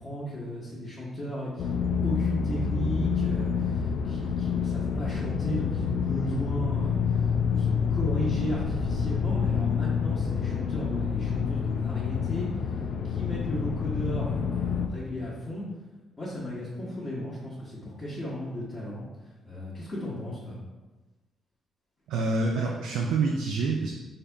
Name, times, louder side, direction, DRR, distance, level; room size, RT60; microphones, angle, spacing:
voice 1, 0.0-12.8 13.0-15.6 16.2-19.0 19.4-20.6, equal, 25° left, -9 dB, 1.1 m, -35 dB
sound 1, 1.6-14.9, left 6 dB, 65° left, 0.3 m, -28 dB
voice 2, 22.1-23.9, right 3 dB, 90° right, 0 dB, 0.4 m, -27 dB
3.5 x 2.7 x 3.4 m, 1.2 s
cardioid pair, 90°, 0 cm